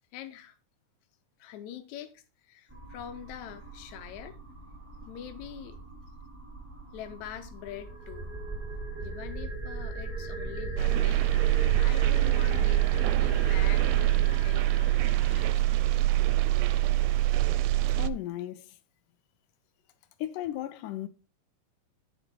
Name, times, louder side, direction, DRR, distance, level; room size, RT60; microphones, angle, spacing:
voice 1, 0.1-0.6 1.4-4.4 5.0-5.8 6.9-8.3 9.0-15.6, left 10 dB, 70° left, 2.2 m, -44 dB
sound 1, 2.7-18.1, right 2 dB, 10° right, 0.7 m, -39 dB
sound 2, 10.8-18.1, right 16 dB, 80° right, 1.9 m, -24 dB
voice 2, 18.0-18.8 20.2-21.1, left 13 dB, 90° left, 2.2 m, -35 dB
12.0 x 4.1 x 4.5 m
omnidirectional pair, 3.6 m